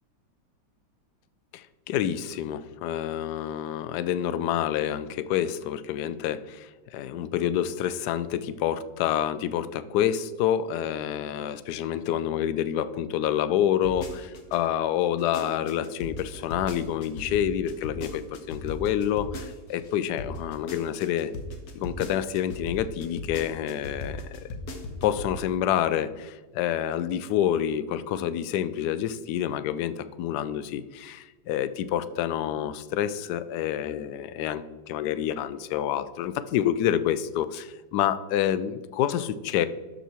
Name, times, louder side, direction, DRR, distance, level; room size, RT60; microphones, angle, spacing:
voice 1, 1.5-21.3 21.7-24.5 25.0-39.7, left 10 dB, 75° left, 14 dB, 1.1 m, -28 dB
sound 1, 13.8-14.6 15.0-19.9 20.2-25.4 25.7-25.8, left 2 dB, 60° left, 1.6 m, -37 dB
12.5 x 5.5 x 4.3 m, 1.3 s
omnidirectional pair, 1.9 m